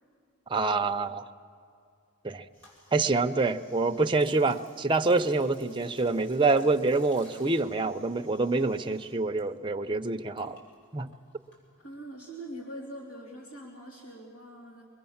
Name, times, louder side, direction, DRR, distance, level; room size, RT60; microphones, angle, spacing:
voice 1, 0.5-1.2 2.2-2.4 2.9-10.6 10.9-11.1, right 3 dB, 25° right, 6 dB, 0.6 m, -26 dB
sound 1, 2.5-9.4 9.7-12.1, equal, 55° left, 7.8 m, -58 dB
voice 2, 11.8-14.8, right 1 dB, 85° left, -3 dB, 3.2 m, -43 dB
26.0 x 22.0 x 7.2 m, 2.4 s
head